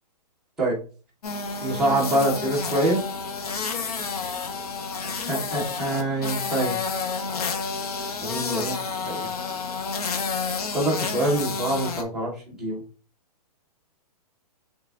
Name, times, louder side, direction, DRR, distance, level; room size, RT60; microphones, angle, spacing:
sound 1, 1.2-12.0, left 5 dB, 65° left, 0.8 m, -30 dB
voice 1, 1.6-3.0 5.0-6.8 8.2-8.8 9.0-9.2 10.7-12.8, right 1 dB, ahead, -7 dB, 0.6 m, -25 dB
4.5 x 3.3 x 2.3 m, 0.37 s
hypercardioid pair, 180°, 20 cm